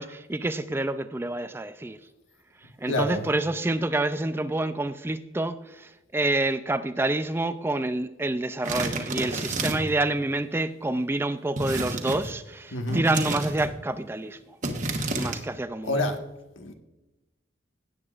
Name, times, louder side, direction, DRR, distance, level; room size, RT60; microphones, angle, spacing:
voice 1, 0.0-2.0 2.8-14.4 15.1-16.0, right 2 dB, 10° right, 0.3 m, -28 dB
voice 2, 2.9-3.3 12.7-13.0 15.8-16.2 16.6-16.7, left 1 dB, 85° left, 1.4 m, -27 dB
sound 1, 8.6-10.0 11.6-12.3 12.9-13.7 14.6-15.4, right 2 dB, 40° right, 1.1 m, -30 dB
17.5 x 8.0 x 2.5 m
head